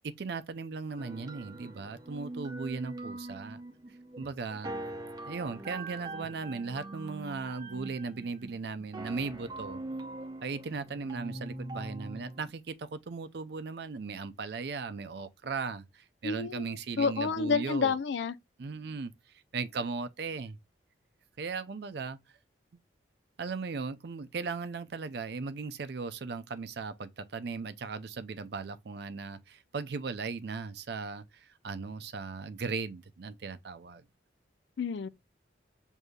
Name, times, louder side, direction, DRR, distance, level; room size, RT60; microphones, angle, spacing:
voice 1, 0.0-3.6 4.2-4.7 5.3-9.8 10.4-18.0 18.6-19.1 19.5-20.6 21.4-22.2 23.4-34.0, right 4 dB, 55° right, 0.4 m, -37 dB
sound 1, 1.0-12.5, right 2 dB, 20° right, 0.7 m, -42 dB
voice 2, 16.2-18.3 34.8-35.1, left 5 dB, 65° left, 0.4 m, -30 dB
6.4 x 2.7 x 2.2 m
head